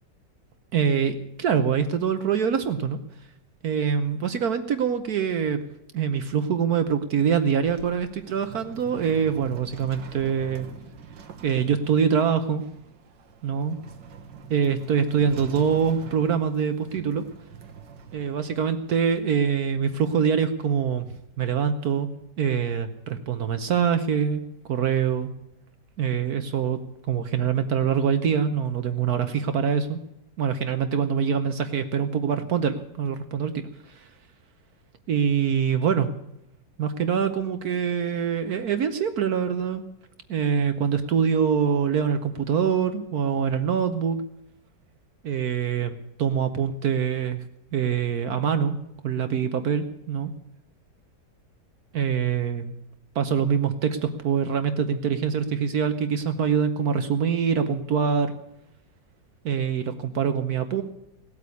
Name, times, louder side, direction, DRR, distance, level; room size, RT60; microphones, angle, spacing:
voice 1, 0.7-3.0 3.6-5.6 5.9-10.7 11.4-12.6 13.4-13.8 14.5-17.2 18.1-21.1 21.4-22.1 22.4-25.3 26.0-26.8 27.1-30.0 30.4-34.1 35.1-36.1 36.8-39.8 40.3-44.2 45.2-47.4 47.7-48.8 49.0-50.3 51.9-52.7 53.1-58.3 59.4-60.8, right 7 dB, 60° right, 9 dB, 1.3 m, -24 dB
sound 1, 7.5-19.2, right 6 dB, 80° right, 1.9 m, -44 dB
17.5 x 8.5 x 8.3 m, 0.80 s
omnidirectional pair, 1.9 m